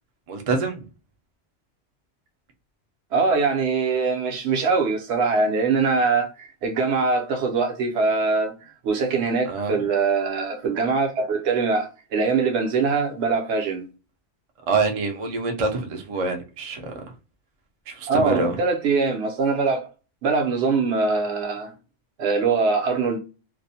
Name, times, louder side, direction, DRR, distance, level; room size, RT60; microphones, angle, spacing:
voice 1, 0.3-0.9 9.5-9.7 14.7-17.0 17.9-18.6, right 4 dB, 50° right, 0.4 m, -25 dB
voice 2, 3.1-8.6 8.8-13.9 18.1-19.9 20.2-21.7 22.2-23.2, right 4 dB, 70° right, 0.8 m, -22 dB
2.4 x 2.0 x 2.6 m
omnidirectional pair, 1.2 m